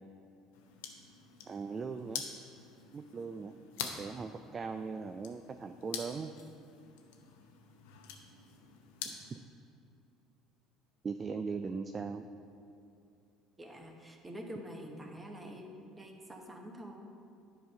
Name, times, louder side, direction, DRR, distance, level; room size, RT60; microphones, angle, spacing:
sound 1, 0.5-9.4, left 7 dB, 75° left, 0.7 m, -46 dB
voice 1, 1.5-2.2 2.9-6.3 9.0-9.4 11.0-12.3, right 5 dB, 35° right, 8 dB, 0.3 m, -40 dB
voice 2, 13.6-17.0, equal, 15° right, 2 dB, 1.2 m, -46 dB
10.0 x 3.9 x 5.3 m, 2.6 s
hypercardioid pair, 70°, 0 cm